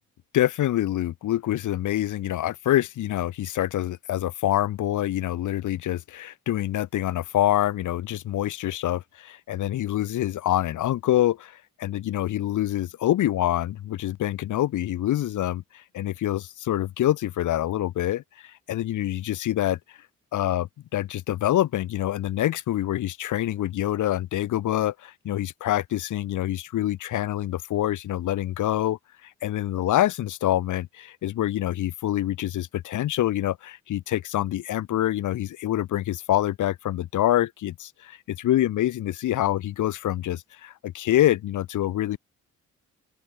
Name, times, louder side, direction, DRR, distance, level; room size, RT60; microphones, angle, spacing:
voice 1, 0.3-19.8 20.3-42.2, left 13 dB, 80° left, 7.7 m, -26 dB
open air
cardioid pair, 90°, 30 cm